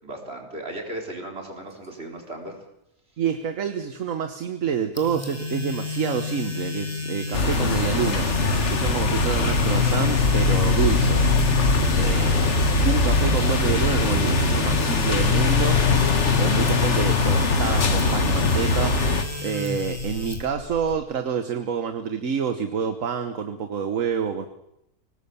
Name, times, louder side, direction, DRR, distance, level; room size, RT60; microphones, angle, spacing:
voice 1, 0.0-2.7 12.0-12.5, right 1 dB, 40° right, 1 dB, 4.5 m, -36 dB
voice 2, 3.2-11.3 12.0-12.5 12.8-15.8 16.4-19.1 19.4-24.5, right 6 dB, 60° right, 8 dB, 1.5 m, -28 dB
sound 1, 5.0-20.9, right 2 dB, 10° left, 2.2 m, -31 dB
sound 2, 7.3-19.2, left 4 dB, 50° left, 1.8 m, -21 dB
24.5 x 18.5 x 7.0 m, 0.80 s
omnidirectional pair, 1.6 m